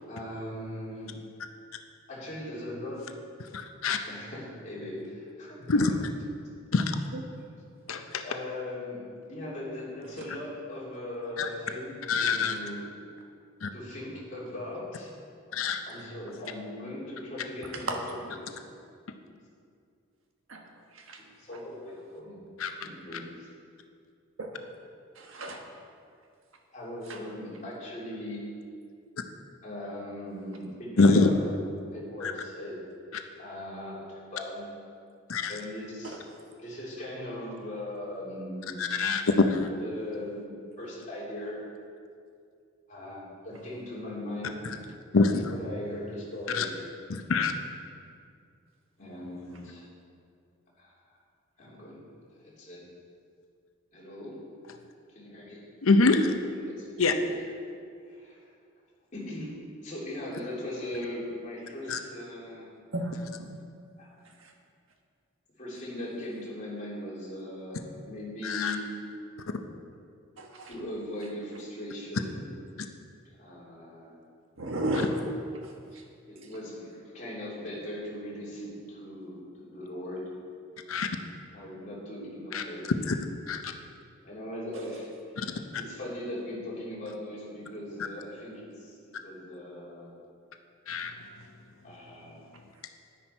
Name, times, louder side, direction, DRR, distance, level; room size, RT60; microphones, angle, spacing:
voice 1, 0.1-1.2 2.1-3.1 4.1-5.9 8.2-13.0 13.7-15.1 15.5-18.0 18.4-18.5 21.2-22.4 22.8-23.5 26.7-28.4 29.6-31.5 31.9-32.8 33.4-34.7 35.5-36.2 36.6-38.9 39.8-40.5 40.8-41.6 42.9-44.6 45.5-46.7 47.1-47.2 49.0-49.9 50.8-50.9 51.6-52.0 52.3-52.9 53.9-54.4 55.1-55.6 56.7-57.3 58.1-58.5 59.1-62.8 64.0-64.3 65.6-68.9 70.6-72.8 73.4-74.2 75.9-76.0 76.3-80.3 81.5-82.9 84.2-89.0 89.2-90.1 91.8-92.4, left 1 dB, 35° left, -7 dB, 3.1 m, -39 dB
voice 2, 3.5-4.0 5.7-5.9 6.7-7.0 7.9-8.2 11.4-11.5 12.1-12.6 13.6-13.7 15.5-15.8 22.6-22.7 31.0-31.3 32.2-32.3 35.3-35.5 38.8-39.7 44.6-44.8 45.1-45.5 46.5-46.7 47.1-47.5 55.8-56.3 57.0-57.1 61.9-62.0 68.4-68.8 80.9-81.1 82.5-82.6 83.1-83.2 83.5-83.7 85.4-85.5 90.9-91.1, left 3 dB, 85° left, 6 dB, 0.7 m, -24 dB
voice 3, 25.1-25.6 27.1-27.2 36.0-36.2 62.9-63.5 64.4-64.5 70.4-70.7 74.6-75.1 75.6-76.0, right 1 dB, 80° right, 2 dB, 1.4 m, -34 dB
10.5 x 10.0 x 4.5 m, 2.3 s
head